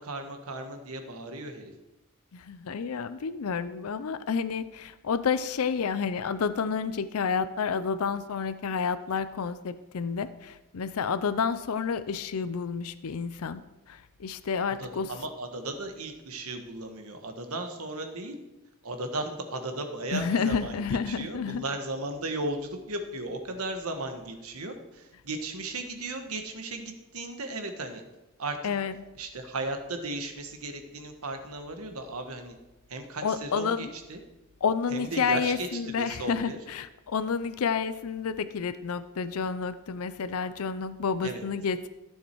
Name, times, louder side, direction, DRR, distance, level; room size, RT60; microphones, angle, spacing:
voice 1, 0.0-1.7 14.8-18.4 18.8-28.0 28.4-28.6 29.2-32.6 32.9-34.2 34.9-35.7 35.9-36.6 41.2-41.4, right 2 dB, 75° right, 6 dB, 1.4 m, -36 dB
voice 2, 2.3-13.6 13.9-15.1 20.1-21.6 28.6-28.9 33.2-33.9 34.6-41.9, left 5 dB, 75° left, 12 dB, 0.5 m, -30 dB
14.5 x 6.6 x 4.6 m, 1.0 s
head